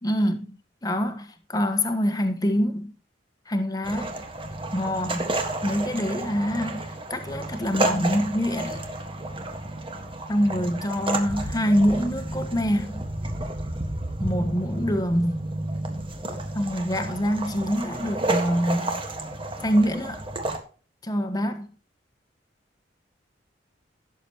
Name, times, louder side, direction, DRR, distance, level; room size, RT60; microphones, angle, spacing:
voice 1, 0.0-0.5 0.8-2.9 3.5-4.2 4.7-5.3 5.6-8.8 10.3-13.0 14.2-15.5 16.5-19.0 19.6-20.2 21.0-21.7, equal, 20° left, 1.3 m, -25 dB
sound 1, 3.8-20.6, right 2 dB, 30° right, 1.6 m, -31 dB
17.0 x 7.1 x 3.0 m
head